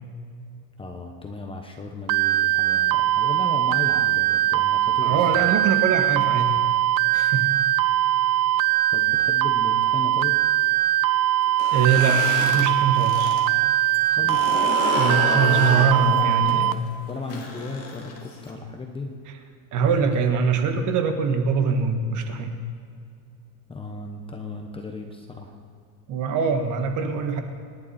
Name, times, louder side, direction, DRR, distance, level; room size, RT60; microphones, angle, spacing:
voice 1, 0.8-5.5 8.9-10.4 14.1-14.5 16.0-19.1 23.7-25.6, left 3 dB, 10° left, 2 dB, 1.0 m, -35 dB
sound 1, 2.1-16.7, right 13 dB, 85° right, 0.7 m, -21 dB
voice 2, 5.0-6.6 7.1-7.5 11.7-13.4 14.9-16.7 19.7-22.6 26.1-27.4, right 5 dB, 35° right, 6 dB, 1.6 m, -23 dB
sound 2, 11.5-13.4 13.7-18.5, left 4 dB, 30° left, 2.5 m, -30 dB
27.0 x 10.5 x 4.3 m, 2.4 s
supercardioid pair, 160°, 49 cm